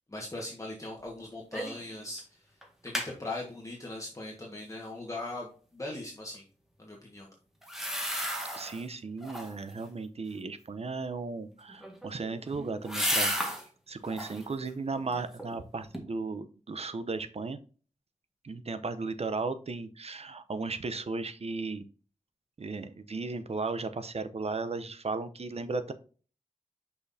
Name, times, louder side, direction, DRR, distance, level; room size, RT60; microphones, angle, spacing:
voice 1, 0.1-2.4 2.8-6.4 6.8-7.3, left 2 dB, 25° left, -2 dB, 1.5 m, -40 dB
sound 1, 1.5-1.9 2.2-2.3 2.6-3.1 7.6-8.8 9.2-9.7 11.7-13.6 14.0-14.5 15.0-15.6 15.9-16.0, equal, 5° right, 1.8 m, -33 dB
voice 2, 8.5-13.6 13.9-17.6 18.4-21.8 22.6-25.9, right 3 dB, 55° right, 11 dB, 0.7 m, -35 dB
6.2 x 5.6 x 2.7 m, 0.39 s
wide cardioid pair, 80°, 13 cm